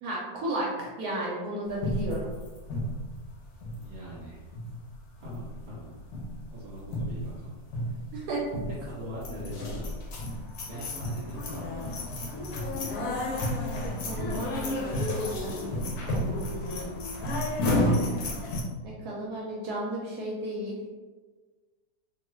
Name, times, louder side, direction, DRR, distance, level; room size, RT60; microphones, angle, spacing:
voice 1, 0.0-2.3 8.1-8.4 14.0-16.4 17.8-18.2 18.8-20.8, right 1 dB, 75° right, -4 dB, 1.1 m, -34 dB
sound 1, 1.8-4.3 4.5-5.0 5.2-5.9 6.1-6.4 6.8-7.4 7.7-8.1 8.5-8.9 9.2-18.6, left 1 dB, 75° left, 1.1 m, -31 dB
voice 2, 3.7-4.5 5.2-6.0 6.2-7.5 7.8-8.0 8.6-9.9 10.6-11.9, equal, 45° right, -7 dB, 1.3 m, -42 dB
2.7 x 2.3 x 3.0 m, 1.3 s
omnidirectional pair, 1.7 m